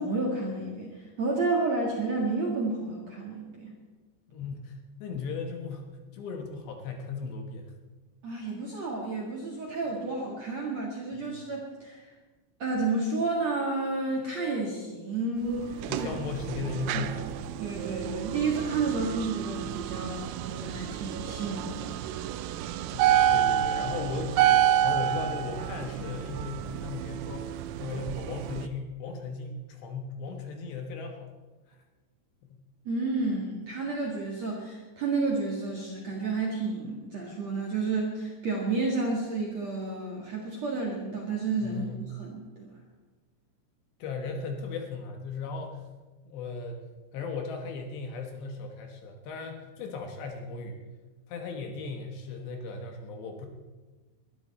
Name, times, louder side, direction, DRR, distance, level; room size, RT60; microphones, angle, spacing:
voice 1, 0.0-3.7 8.2-12.1 12.6-16.1 16.9-17.1 17.6-22.0 32.9-42.7, right 3 dB, 50° right, -3 dB, 2.2 m, -31 dB
voice 2, 4.3-4.7 5.0-5.9 6.1-7.8 15.9-17.3 22.9-24.6 24.8-31.3 31.7-31.8 41.6-42.0 44.0-45.8 46.3-46.8 47.1-50.8 51.3-53.5, left 4 dB, 70° left, 3 dB, 3.1 m, -37 dB
sound 1, 15.6-28.7, right 11 dB, 90° right, 3.4 m, -29 dB
22.0 x 13.0 x 4.3 m, 1.3 s
omnidirectional pair, 5.8 m